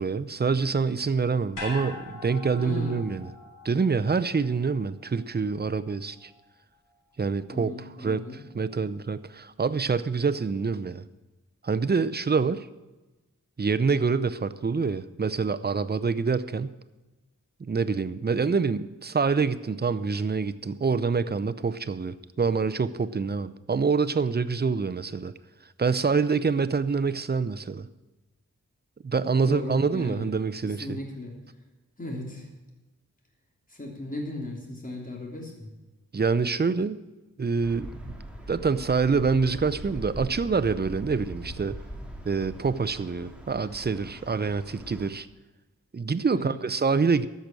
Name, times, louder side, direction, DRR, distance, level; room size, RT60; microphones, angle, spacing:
voice 1, 0.0-3.3 3.6-6.3 7.2-8.3 8.5-11.0 11.6-12.7 13.6-16.8 17.6-25.3 25.8-27.9 29.0-31.0 36.1-37.0 37.4-38.1 38.5-41.8 42.2-45.3 45.9-47.3, right 5 dB, 30° right, 14 dB, 0.6 m, -26 dB
sound 1, 1.5-5.9 6.2-6.3, left 3 dB, 85° left, 4.7 m, -42 dB
voice 2, 2.6-3.0 7.5-8.4 29.4-30.3 30.6-31.3 32.0-32.5 33.7-35.7 46.3-46.6, left 1 dB, 25° left, -1 dB, 3.1 m, -36 dB
sound 2, 37.6-45.1, equal, 5° right, 2.2 m, -41 dB
13.5 x 6.2 x 9.0 m, 1.1 s
wide cardioid pair, 80°, 31 cm